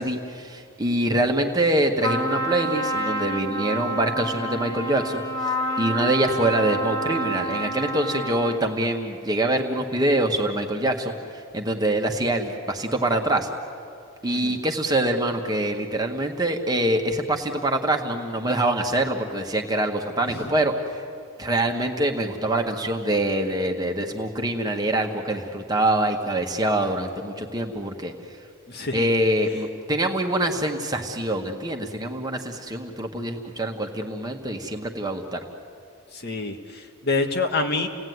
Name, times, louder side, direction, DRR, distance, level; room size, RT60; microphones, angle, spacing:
voice 1, 0.0-13.5 14.2-21.0 21.4-28.1 28.9-35.4, right 1 dB, 15° right, 3 dB, 1.6 m, -25 dB
Trumpet, 2.0-8.7, right 1 dB, 20° left, 1.8 m, -28 dB
voice 2, 14.2-14.6 20.3-20.5 28.7-29.1 36.1-37.9, left 3 dB, 45° left, 5 dB, 1.5 m, -27 dB
30.0 x 18.0 x 9.5 m, 2.4 s
head